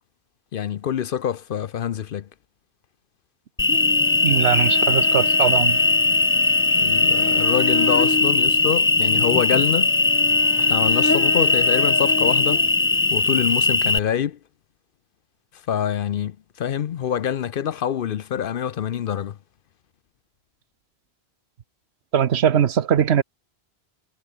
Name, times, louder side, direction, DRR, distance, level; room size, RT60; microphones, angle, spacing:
voice 1, 0.5-2.3 6.8-9.9 10.6-12.6 13.1-14.4 15.5-19.4, left 9 dB, 60° left, 0.7 m, -25 dB
Cricket, 3.6-14.0, left 2 dB, 15° left, 0.5 m, -19 dB
voice 2, 4.2-5.8 22.1-23.2, right 8 dB, 75° right, 1.1 m, -20 dB
omnidirectional pair, 1.1 m